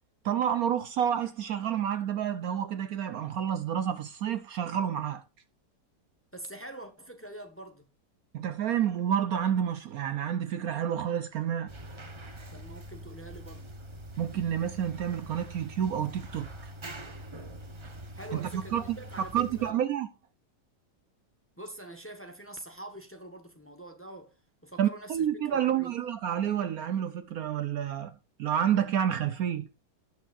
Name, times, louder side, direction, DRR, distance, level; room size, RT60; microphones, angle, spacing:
voice 1, 0.2-5.2 8.3-11.7 14.2-16.7 18.3-18.8 19.2-20.1 24.8-29.7, right 9 dB, 65° right, 1.0 m, -29 dB
voice 2, 6.3-7.9 12.5-13.7 18.1-19.8 21.6-24.3 24.6-25.9, right 1 dB, 10° left, 1.2 m, -45 dB
sound 1, 11.7-19.7, right 1 dB, 25° right, 0.7 m, -44 dB
18.0 x 6.2 x 2.5 m
omnidirectional pair, 1.8 m